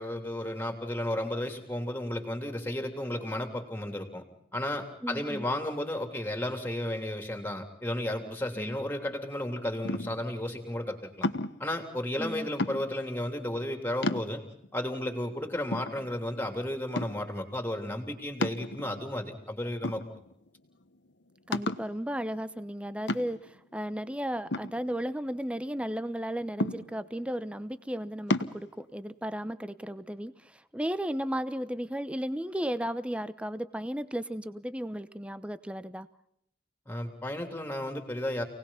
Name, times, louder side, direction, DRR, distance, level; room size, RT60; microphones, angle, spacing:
voice 1, 0.0-4.2 4.5-11.3 11.6-14.4 14.7-20.2 36.9-38.4, left 1 dB, 10° left, 5 dB, 3.2 m, -33 dB
voice 2, 5.0-5.4 8.6-8.8 12.2-12.5 21.5-36.1, equal, 5° right, 13 dB, 0.8 m, -34 dB
sound 1, 9.8-10.3 11.2-11.7 12.6-13.1 13.6-13.7 14.0-14.7 15.2-15.3 15.7-16.5 16.9-17.4 18.4-19.1 19.8-20.5 20.8-20.9 21.5-21.9 23.1-23.6 24.5-25.4 26.6-27.2 28.3-28.6, left 2 dB, 85° left, 1.3 m, -32 dB
28.0 x 19.0 x 5.7 m, 0.73 s
head